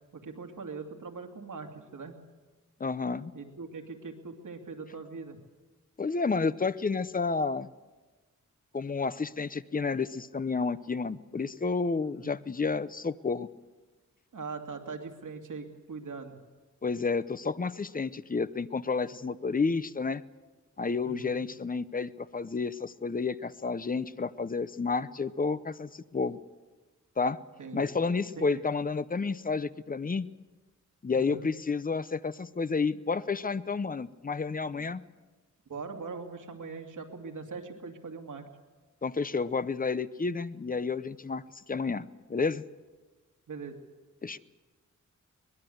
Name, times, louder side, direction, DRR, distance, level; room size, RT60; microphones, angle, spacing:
voice 1, 0.1-2.2 3.3-5.4 12.0-12.3 14.3-16.4 21.0-21.5 27.6-28.1 28.4-28.6 31.2-31.5 35.7-38.5 43.5-43.8, right 4 dB, 80° right, 3 dB, 2.6 m, -41 dB
voice 2, 2.8-3.3 6.0-7.7 8.7-13.5 16.8-20.2 20.8-26.4 27.2-27.4 27.7-30.3 31.0-35.0 39.0-41.4 41.7-42.6 44.2-44.4, left 4 dB, 30° left, 15 dB, 0.7 m, -30 dB
23.5 x 20.5 x 8.0 m, 1.3 s
wide cardioid pair, 130°, 31 cm